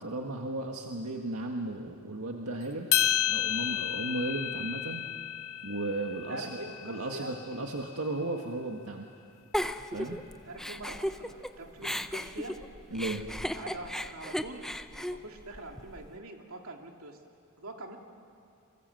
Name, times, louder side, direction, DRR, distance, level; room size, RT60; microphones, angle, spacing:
voice 1, 0.0-2.9 3.2-5.0 5.6-9.1 9.9-10.2 12.9-13.3, right 2 dB, 90° right, 2 dB, 1.7 m, -35 dB
sound 1, 2.9-7.3, left 12 dB, 70° left, 0.7 m, -31 dB
voice 2, 6.3-7.4 9.9-10.2 10.4-12.6 13.5-14.6 15.0-17.2 17.6-18.0, right 2 dB, 70° right, 2 dB, 2.7 m, -44 dB
Giggle, 9.5-11.5 11.8-16.1, equal, ahead, 0.7 m, -35 dB
28.5 x 24.0 x 7.8 m, 2.4 s
head